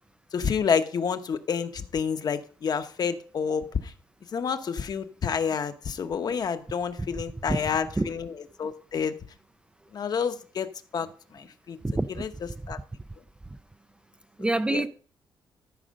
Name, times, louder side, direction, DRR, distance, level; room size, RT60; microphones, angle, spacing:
voice 1, 0.3-3.9 4.3-9.1 9.9-11.8 12.2-12.3 12.7-12.8 14.4-14.9, left 6 dB, 50° left, 1.0 m, -29 dB
voice 2, 11.8-12.3 14.4-14.9, right 2 dB, 10° right, 0.4 m, -26 dB
14.0 x 5.0 x 6.4 m
cardioid pair, 125°, 9 cm